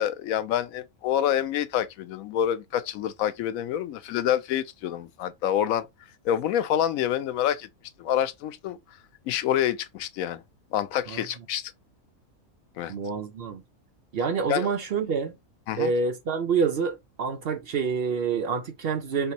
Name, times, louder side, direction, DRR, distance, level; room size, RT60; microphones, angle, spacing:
voice 1, 0.0-5.9 6.2-7.7 8.0-8.8 9.3-10.4 10.7-11.7 12.8-12.9 14.5-14.7 15.7-15.9, left 10 dB, 85° left, 1.0 m, -27 dB
voice 2, 12.9-13.6 14.1-15.3 15.8-19.3, right 5 dB, 55° right, 0.7 m, -27 dB
3.4 x 2.7 x 4.0 m
omnidirectional pair, 1.4 m